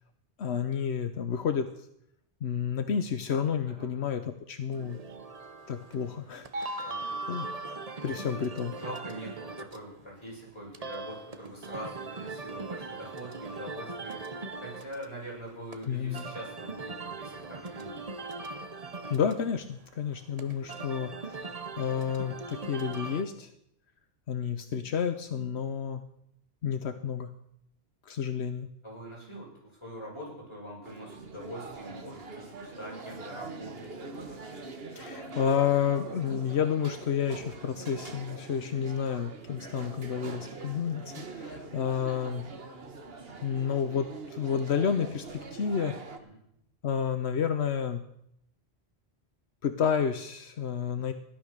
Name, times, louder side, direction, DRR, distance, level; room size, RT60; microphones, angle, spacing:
voice 1, 0.4-1.7 2.4-5.0 5.7-6.8 7.3-8.7 15.9-16.3 19.1-23.5 24.3-26.0 26.6-27.3 28.1-28.7 34.9-42.4 43.4-46.0 46.8-48.0 49.6-51.1, left 7 dB, 80° left, 8 dB, 1.2 m, -30 dB
sound 1, 4.7-23.2, right 3 dB, 40° right, 1.0 m, -40 dB
voice 2, 8.7-18.1 28.8-34.0 46.2-46.4, equal, 25° left, -5 dB, 7.4 m, -43 dB
sound 2, 30.8-46.2, right 3 dB, 65° right, 1.6 m, -43 dB
16.0 x 11.5 x 6.6 m, 0.75 s
omnidirectional pair, 1.1 m